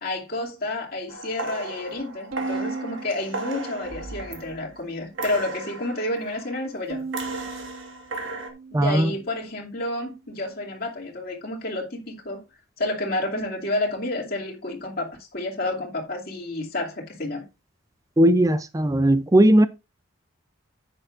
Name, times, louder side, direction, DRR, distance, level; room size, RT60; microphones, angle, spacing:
voice 1, 0.0-7.1 8.7-12.4 12.8-17.4, left 2 dB, 45° left, 2.6 m, -30 dB
sound 1, 1.1-4.8 5.2-6.6 7.1-8.5, right 2 dB, 65° right, 1.7 m, -35 dB
Bowed string instrument, 2.3-4.7 5.1-5.9 6.9-9.4, right 3 dB, 85° right, 1.4 m, -37 dB
voice 2, 8.7-9.1 18.2-19.7, right 1 dB, 15° right, 0.4 m, -18 dB
10.5 x 8.9 x 2.5 m
head